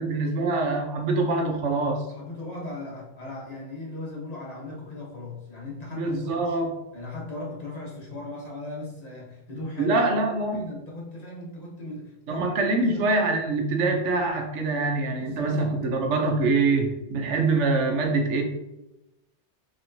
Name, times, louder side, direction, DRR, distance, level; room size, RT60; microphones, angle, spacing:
voice 1, 0.0-2.0 5.9-6.7 9.8-10.6 12.3-18.4, right 3 dB, 85° right, 2 dB, 1.0 m, -24 dB
voice 2, 2.1-6.6 6.9-10.0 10.5-12.5 12.8-13.1 15.2-15.8, left 2 dB, 35° left, -5 dB, 1.1 m, -38 dB
4.3 x 3.0 x 2.6 m, 0.94 s
omnidirectional pair, 1.2 m